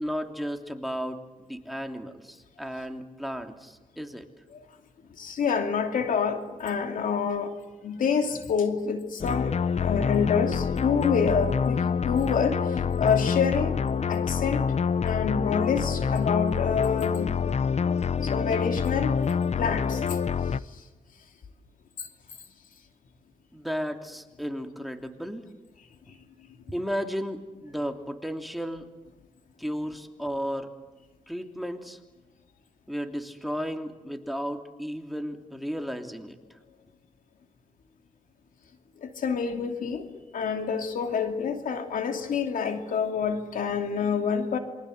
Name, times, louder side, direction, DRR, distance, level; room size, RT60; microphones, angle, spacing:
voice 1, 0.0-4.2 23.5-25.5 26.7-28.9 29.6-30.7 31.3-32.0 32.9-36.4, equal, ahead, 5 dB, 3.0 m, -34 dB
voice 2, 5.2-7.5 7.8-9.5 9.8-13.8 14.1-14.7 15.0-17.4 18.2-19.2 19.6-20.2 20.7-20.8 22.0-22.1 39.0-40.1 40.3-44.6, left 6 dB, 80° left, 5 dB, 2.8 m, -27 dB
sound 1, 9.2-20.6, left 6 dB, 55° left, 0.9 m, -26 dB
27.5 x 24.0 x 8.0 m, 1.2 s
cardioid pair, 65°, 14 cm